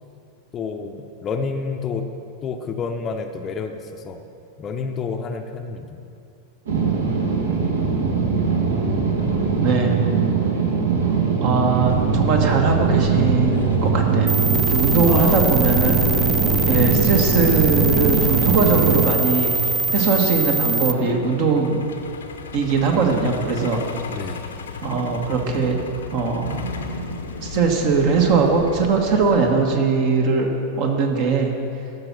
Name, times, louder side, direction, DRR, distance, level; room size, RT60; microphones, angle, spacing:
voice 1, 0.5-2.1 2.4-3.8 4.0-4.2 4.6-6.0 13.5-13.8 15.1-16.0 16.6-16.9 24.1-24.4, left 5 dB, 30° left, 5 dB, 0.7 m, -29 dB
sound 1, 6.7-19.1, right 5 dB, 65° right, 1.5 m, -21 dB
voice 2, 9.6-10.0 11.4-14.4 14.7-16.0 16.6-19.6 19.9-21.8 22.5-23.8 24.8-25.8 26.1-26.7 27.4-30.5 30.7-31.5, right 4 dB, 45° right, 2 dB, 1.5 m, -20 dB
Truck, 11.9-29.6, left 4 dB, 70° left, 0.8 m, -35 dB
sound 2, 14.3-20.9, right 4 dB, 15° right, 0.6 m, -22 dB
13.5 x 6.2 x 6.0 m, 2.6 s
figure-of-eight pair, 90°, 0 cm